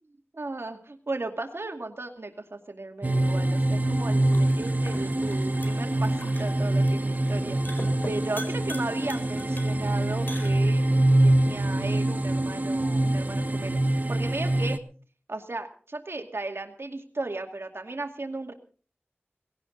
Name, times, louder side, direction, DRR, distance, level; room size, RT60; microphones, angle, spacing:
voice 1, 0.3-7.6 8.0-10.8 11.2-13.8 14.1-14.8 15.3-18.5, right 2 dB, 70° right, 4 dB, 2.2 m, -35 dB
sound 1, 3.0-11.0, left 1 dB, 50° left, 4.0 m, -44 dB
sound 2, 3.0-14.8, right 1 dB, 40° right, 1.2 m, -24 dB
19.0 x 17.0 x 3.9 m, 0.41 s
wide cardioid pair, 60°, 4 cm